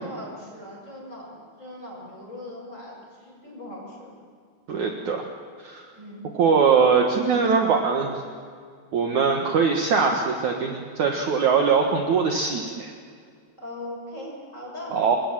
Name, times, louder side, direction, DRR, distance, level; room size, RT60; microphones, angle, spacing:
voice 1, 0.0-4.1 5.9-6.3 13.6-15.0, left 1 dB, 15° left, -2 dB, 7.6 m, -39 dB
voice 2, 4.7-5.2 5.6-5.8 6.3-8.2 8.9-12.9 14.9-15.2, right 5 dB, 55° right, 2 dB, 2.5 m, -21 dB
28.5 x 23.0 x 7.4 m, 2.1 s
omnidirectional pair, 4.6 m